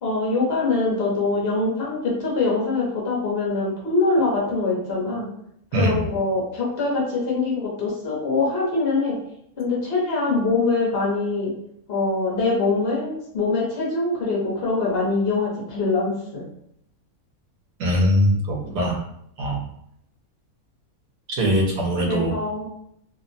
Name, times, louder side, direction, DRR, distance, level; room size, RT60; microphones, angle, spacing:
voice 1, 0.0-5.3 5.8-9.2 9.6-11.5 11.9-16.4 18.6-18.7 22.0-22.6, left 3 dB, 45° left, -4 dB, 1.1 m, -23 dB
voice 2, 5.7-6.0 17.8-19.0 19.4-19.6 21.3-22.4, equal, 75° right, -1 dB, 1.2 m, -21 dB
2.9 x 2.1 x 2.6 m, 0.72 s
omnidirectional pair, 1.5 m